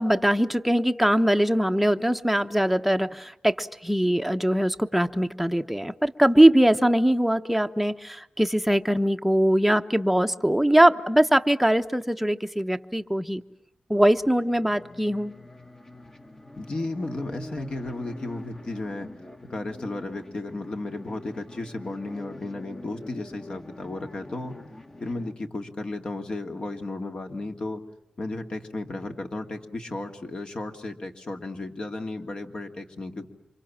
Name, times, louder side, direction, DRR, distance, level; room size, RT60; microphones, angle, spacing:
voice 1, 0.0-13.4 13.9-15.3, right 1 dB, 5° right, 7 dB, 1.0 m, -22 dB
sound 1, 14.0-25.3, left 1 dB, 20° left, 1.5 m, -45 dB
voice 2, 16.5-19.1 19.5-24.6 25.0-27.8 28.2-33.3, left 2 dB, 45° left, 5 dB, 2.6 m, -34 dB
28.0 x 25.5 x 7.4 m, 0.80 s
wide cardioid pair, 95°, 2 cm